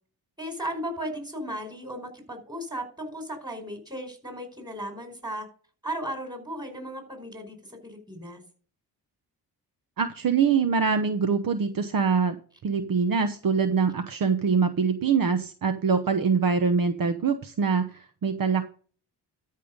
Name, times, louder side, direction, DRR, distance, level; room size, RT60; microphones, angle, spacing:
voice 1, 0.4-5.5 5.8-8.4, right 1 dB, 10° right, 4 dB, 4.8 m, -36 dB
voice 2, 10.0-12.4 12.6-18.6, right 5 dB, 55° right, 9 dB, 1.0 m, -24 dB
12.5 x 5.7 x 5.2 m, 0.41 s
cardioid pair, 70°, 41 cm